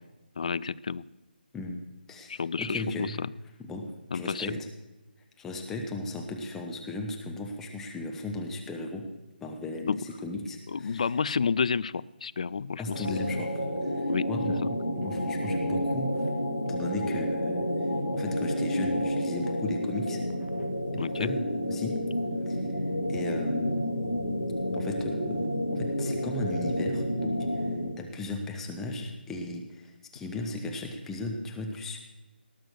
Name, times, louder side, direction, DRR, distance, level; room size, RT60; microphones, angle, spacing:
voice 1, 0.4-1.0 2.3-3.3 4.1-4.6 9.9-10.0 10.7-13.2 14.1-14.3 21.0-21.3, left 5 dB, 40° left, 18 dB, 0.3 m, -30 dB
voice 2, 2.1-3.2 3.7-4.6 5.4-9.1 9.4-11.0 12.8-13.5 13.8-16.2 16.7-17.9 18.1-20.2 20.9-21.4 21.7-22.0 22.5-23.9 24.7-27.7 28.0-32.0, left 2 dB, 5° left, 2 dB, 0.8 m, -36 dB
sound 1, 12.9-28.0, equal, 85° left, 2.1 m, -30 dB
18.5 x 6.2 x 6.5 m, 1.1 s
figure-of-eight pair, 150°, 6 cm